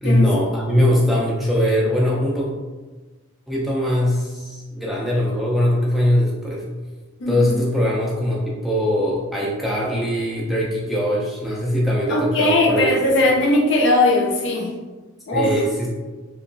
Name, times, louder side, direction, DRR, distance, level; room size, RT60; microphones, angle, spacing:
voice 1, 0.0-2.5 3.5-6.6 7.3-13.4 15.3-15.9, equal, ahead, -5 dB, 0.3 m, -21 dB
voice 2, 7.2-7.7 12.1-14.7 15.3-15.5, left 2 dB, 65° left, 0 dB, 0.5 m, -19 dB
2.9 x 2.2 x 2.5 m, 1.3 s
head